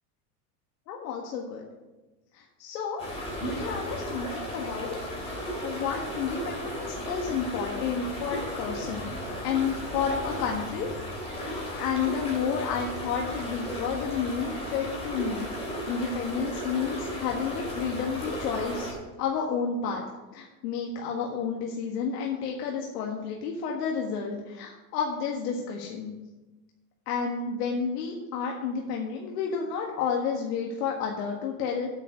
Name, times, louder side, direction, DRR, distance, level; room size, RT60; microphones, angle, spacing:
voice 1, 0.9-1.7 2.3-3.0 3.4-5.3 5.6-9.1 9.4-10.9 11.4-15.5 15.9-20.0 20.3-26.1 27.1-31.9, left 6 dB, 75° left, 0 dB, 1.7 m, -31 dB
sound 1, 3.0-18.9, equal, 10° left, 2.7 m, -35 dB
8.4 x 7.7 x 6.7 m, 1.1 s
supercardioid pair, 165°, 48 cm